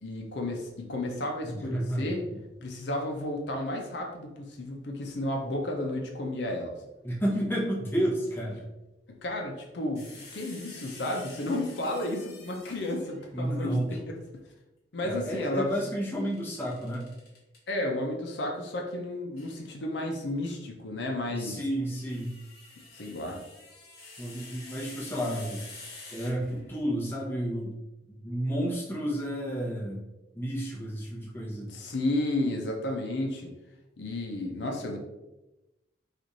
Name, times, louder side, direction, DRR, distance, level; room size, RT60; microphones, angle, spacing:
voice 1, 0.0-2.2 2.6-6.7 9.2-13.7 14.9-15.8 17.7-21.6 22.9-23.4 31.7-33.5 34.0-35.0, left 1 dB, 70° left, 1 dB, 0.6 m, -32 dB
voice 2, 1.4-2.2 7.0-8.6 13.3-14.0 15.0-17.1 21.3-22.3 24.2-25.6 26.1-27.7 28.1-30.0 30.3-31.7, equal, 10° left, -5 dB, 0.8 m, -31 dB
sound 1, 9.9-13.3 16.1-17.6 19.4-19.6 21.7-26.8, left 3 dB, 55° left, 1.0 m, -48 dB
3.1 x 2.5 x 3.9 m, 0.99 s
head